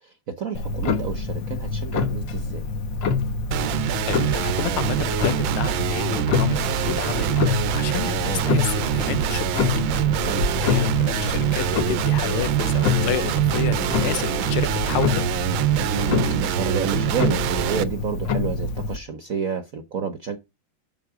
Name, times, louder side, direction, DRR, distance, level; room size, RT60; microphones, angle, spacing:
voice 1, 0.0-2.6 10.2-10.5 15.7-20.4, right 6 dB, 55° right, 1.1 m, -30 dB
Clock, 0.5-19.0, left 4 dB, 65° left, 1.6 m, -26 dB
sound 1, 3.5-17.8, right 12 dB, 75° right, 1.4 m, -25 dB
voice 2, 4.1-9.8 10.6-15.2, left 13 dB, 90° left, 1.5 m, -31 dB
7.5 x 6.4 x 4.8 m
omnidirectional pair, 2.3 m